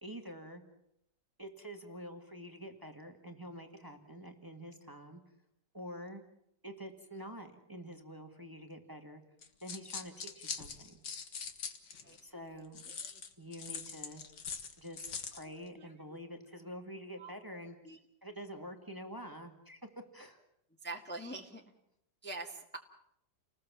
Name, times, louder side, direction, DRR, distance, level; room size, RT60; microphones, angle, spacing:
voice 1, 0.0-0.6 1.4-5.2 5.7-6.2 6.6-9.2 9.6-11.0 12.2-12.8 13.4-14.2 14.8-17.8 18.2-20.4, equal, 10° right, 5 dB, 1.9 m, -47 dB
sound 1, 9.4-12.2 12.7-15.4, left 6 dB, 75° left, 2.2 m, -43 dB
voice 2, 15.4-15.9 17.2-17.3 17.8-18.0 20.8-21.6 22.2-22.8, right 2 dB, 5° left, 1 dB, 1.8 m, -44 dB
30.0 x 20.0 x 7.4 m, 0.76 s
omnidirectional pair, 1.9 m